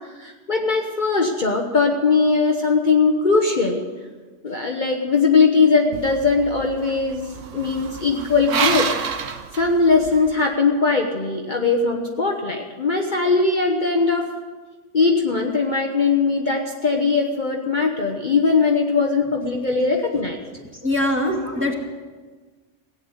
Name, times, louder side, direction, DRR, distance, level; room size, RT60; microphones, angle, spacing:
voice 1, 0.2-3.8 4.4-7.3 7.5-8.9 9.5-14.3 14.9-20.4 21.2-21.7, left 4 dB, 40° left, 1 dB, 1.2 m, -20 dB
sound 1, 5.9-10.3, right 6 dB, 80° right, 1.3 m, -28 dB
voice 2, 20.8-21.7, left 1 dB, 10° right, -1 dB, 2.1 m, -22 dB
16.5 x 9.1 x 8.1 m, 1.4 s
omnidirectional pair, 1.3 m